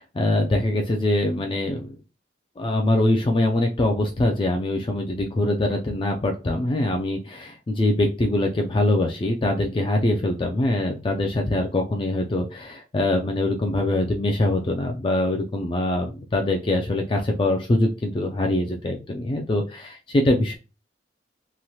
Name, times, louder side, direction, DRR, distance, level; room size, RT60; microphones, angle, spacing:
voice 1, 0.2-1.9 2.6-20.5, left 1 dB, 30° left, 2 dB, 0.3 m, -23 dB
3.0 x 2.8 x 2.2 m, 0.31 s
head